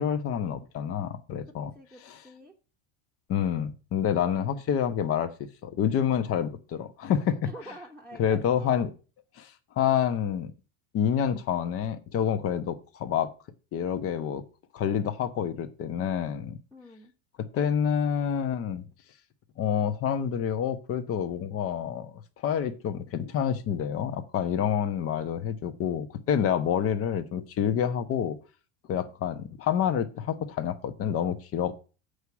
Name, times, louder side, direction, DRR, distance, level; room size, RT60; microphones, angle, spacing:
voice 1, 0.0-1.7 2.1-2.2 3.3-5.3 5.6-7.5 8.2-8.9 9.4-10.5 10.9-13.3 13.7-14.4 14.7-16.6 17.4-18.8 19.6-28.4 28.9-31.7, left 8 dB, 40° left, 1.1 m, -28 dB
voice 2, 1.7-2.5 7.4-8.9 16.7-17.1, right 1 dB, 5° left, 1.1 m, -46 dB
8.0 x 4.9 x 6.9 m
supercardioid pair, 135°, 34 cm